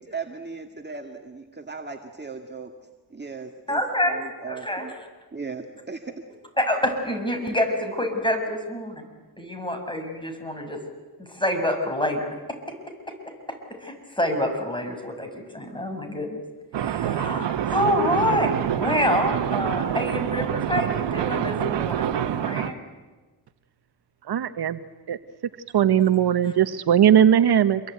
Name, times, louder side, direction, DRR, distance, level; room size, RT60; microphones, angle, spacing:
voice 1, 0.0-2.7 3.1-4.9 5.3-6.2, right 4 dB, 25° right, 3 dB, 2.1 m, -37 dB
voice 2, 3.7-4.2 4.5-4.9 6.6-9.0 9.4-10.8 11.2-12.3 13.8-16.4 16.8-22.8, left 1 dB, 10° left, 5 dB, 6.8 m, -27 dB
sound 1, 16.7-22.7, right 10 dB, 90° right, 1.3 m, -26 dB
voice 3, 24.3-24.8 25.1-25.2 25.7-27.8, right 9 dB, 65° right, 12 dB, 1.0 m, -19 dB
28.0 x 22.5 x 9.3 m, 1.3 s
cardioid pair, 85°, 41 cm